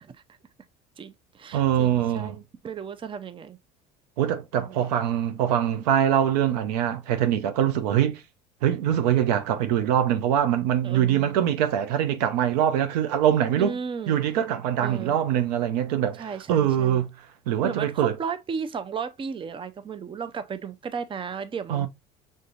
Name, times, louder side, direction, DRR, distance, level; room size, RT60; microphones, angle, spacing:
voice 1, 1.0-3.6 4.6-4.9 10.8-11.3 13.6-14.2 14.8-15.2 16.2-17.0 17.6-21.9, right 6 dB, 25° right, 0.5 m, -34 dB
voice 2, 1.5-2.4 4.2-8.2 8.6-13.8 14.1-17.1 17.5-18.2 21.7-21.9, right 10 dB, 85° right, 0.7 m, -23 dB
5.3 x 3.7 x 2.4 m
supercardioid pair, 80°, 20 cm